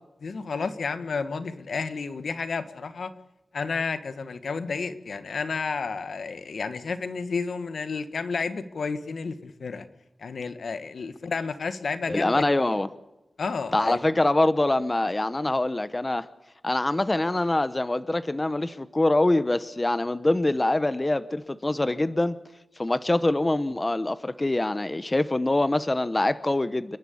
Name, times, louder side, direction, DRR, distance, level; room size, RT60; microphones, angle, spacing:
voice 1, 0.2-3.1 3.5-9.9 10.2-12.4 13.4-14.0, left 4 dB, 90° left, 1.3 m, -31 dB
voice 2, 12.1-12.9 13.7-16.3 16.6-22.4 22.8-27.0, left 2 dB, 25° left, 0.9 m, -24 dB
28.5 x 11.5 x 8.5 m
wide cardioid pair, 105°, 0 cm